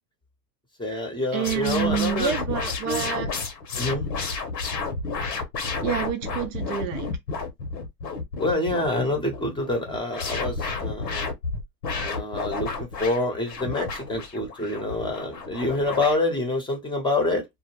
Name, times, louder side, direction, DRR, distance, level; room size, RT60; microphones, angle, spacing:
voice 1, 0.8-2.3 2.9-3.0 3.8-4.1 8.4-11.2 12.0-17.4, left 2 dB, 10° left, 0.7 m, -27 dB
voice 2, 1.3-3.3 5.8-7.1, right 9 dB, 50° right, 0.5 m, -28 dB
sound 1, 1.4-16.2, left 4 dB, 90° left, 0.9 m, -31 dB
2.3 x 2.1 x 3.0 m
hypercardioid pair, 100°, 49 cm